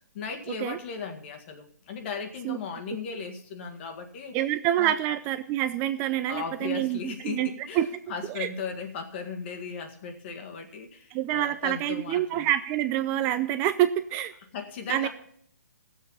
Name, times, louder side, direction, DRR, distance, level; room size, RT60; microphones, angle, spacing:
voice 1, 0.1-4.4 4.8-4.9 6.3-12.5 14.5-15.1, left 5 dB, 40° left, 5 dB, 1.9 m, -37 dB
voice 2, 4.3-7.5 7.7-7.9 8.3-8.5 11.1-14.3 14.9-15.1, right 12 dB, 25° right, 11 dB, 0.5 m, -27 dB
16.5 x 7.5 x 5.6 m, 0.64 s
hypercardioid pair, 140°, 9 cm